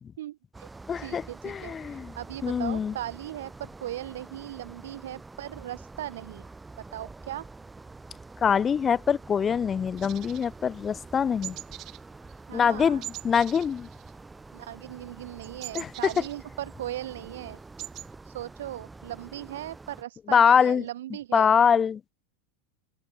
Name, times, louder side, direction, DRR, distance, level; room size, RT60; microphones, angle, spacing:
voice 1, 0.2-0.7 1.0-6.5 6.9-7.5 12.5-13.0 14.5-17.6 18.2-21.5, right 13 dB, 90° right, 0.6 m, -38 dB
sound 1, 0.5-20.0, right 3 dB, 10° right, 2.6 m, -47 dB
voice 2, 0.9-2.1 2.4-2.9 8.4-11.6 12.5-13.9 15.7-15.9 20.3-20.8 21.3-22.0, left 7 dB, 20° left, 0.5 m, -24 dB
sound 2, 10.0-11.1 11.4-12.0 12.3-12.5 13.0-14.5 14.8-16.9 17.3-17.4 17.6-18.1, right 16 dB, 35° right, 3.4 m, -42 dB
open air
supercardioid pair, 155°, 0 cm